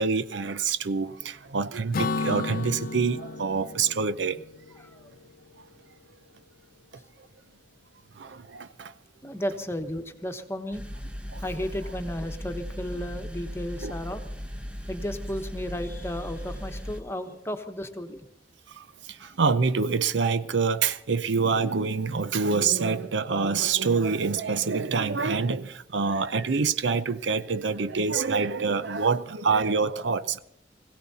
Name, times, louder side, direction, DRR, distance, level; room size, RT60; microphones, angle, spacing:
voice 1, 0.0-4.4 8.2-8.9 11.3-11.5 13.8-13.9 18.7-30.4, right 5 dB, 80° right, 0.6 m, -26 dB
Acoustic guitar / Strum, 1.9-5.6, left 3 dB, 55° left, 0.5 m, -33 dB
voice 2, 9.2-10.8 11.4-14.2 14.9-18.3, equal, 15° left, 1.1 m, -34 dB
sound 1, 10.7-17.0, equal, 5° right, 0.9 m, -37 dB
21.5 x 16.5 x 4.1 m
head